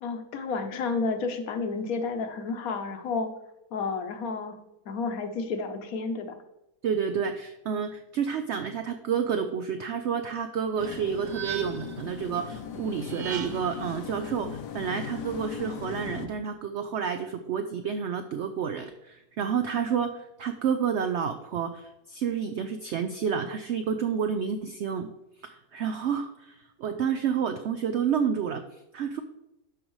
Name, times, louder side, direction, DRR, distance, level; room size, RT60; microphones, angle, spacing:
voice 1, 0.0-3.3 3.7-4.6 4.9-6.4, left 4 dB, 65° left, 7 dB, 1.2 m, -31 dB
voice 2, 6.8-25.1 25.4-29.2, right 7 dB, 90° right, 8 dB, 0.6 m, -30 dB
sound 1, 10.8-16.3, left 8 dB, 80° left, 1.3 m, -39 dB
sound 2, 10.8-12.0 13.0-13.8, right 7 dB, 60° right, 1.1 m, -38 dB
12.5 x 5.1 x 3.1 m, 0.91 s
omnidirectional pair, 1.7 m